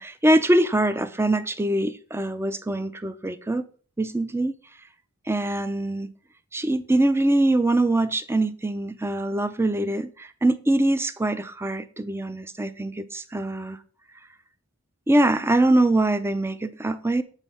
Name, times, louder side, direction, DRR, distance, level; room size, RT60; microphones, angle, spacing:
voice 1, 0.0-3.6 4.0-4.5 5.3-6.1 6.5-13.8 15.1-17.2, right 1 dB, 10° right, 0.5 m, -23 dB
8.2 x 4.4 x 5.5 m
head